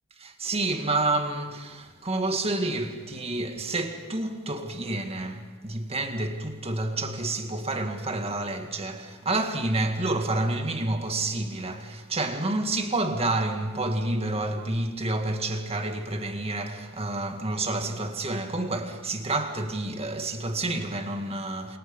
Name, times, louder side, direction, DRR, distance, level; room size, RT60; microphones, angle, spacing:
voice 1, 0.2-21.8, right 2 dB, 30° right, 2.1 m, -29 dB
29.5 x 27.5 x 5.5 m
head